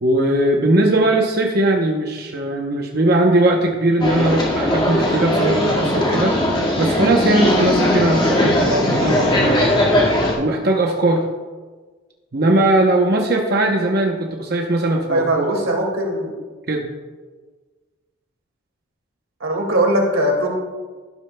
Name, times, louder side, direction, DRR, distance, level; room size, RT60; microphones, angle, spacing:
voice 1, 0.0-9.8 10.4-11.3 12.3-15.5 16.7-16.9, right 1 dB, 50° right, 0 dB, 0.8 m, -19 dB
sound 1, 4.0-10.3, left 1 dB, 25° left, 1.8 m, -18 dB
voice 2, 15.1-16.3 19.4-20.5, right 1 dB, 85° right, 1 dB, 2.1 m, -20 dB
12.0 x 12.0 x 2.2 m, 1.4 s
head